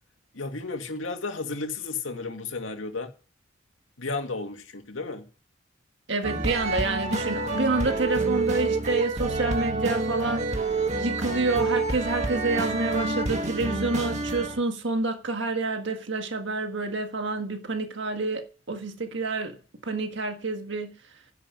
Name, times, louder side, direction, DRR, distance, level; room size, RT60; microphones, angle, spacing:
voice 1, 0.3-3.1 4.0-5.3, left 3 dB, 80° left, 2.3 m, -33 dB
voice 2, 6.1-21.0, right 3 dB, 65° right, 1.7 m, -28 dB
sound 1, 6.2-14.6, right 3 dB, 35° right, 1.9 m, -28 dB
10.5 x 9.5 x 6.1 m
head